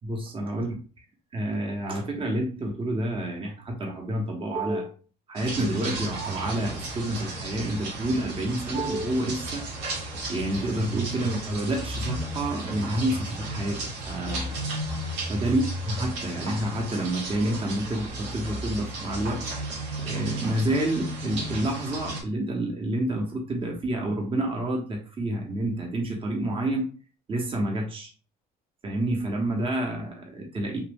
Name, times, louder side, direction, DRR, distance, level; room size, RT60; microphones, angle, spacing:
voice 1, 0.0-0.8 1.3-5.0 5.3-9.6 10.3-14.7 15.3-19.4 20.0-26.8 27.3-28.1 28.8-30.8, right 1 dB, 30° right, 1 dB, 0.9 m, -29 dB
sound 1, 5.4-22.2, right 2 dB, 85° right, 1.0 m, -34 dB
3.0 x 2.3 x 3.5 m, 0.37 s
cardioid pair, 110°, 17 cm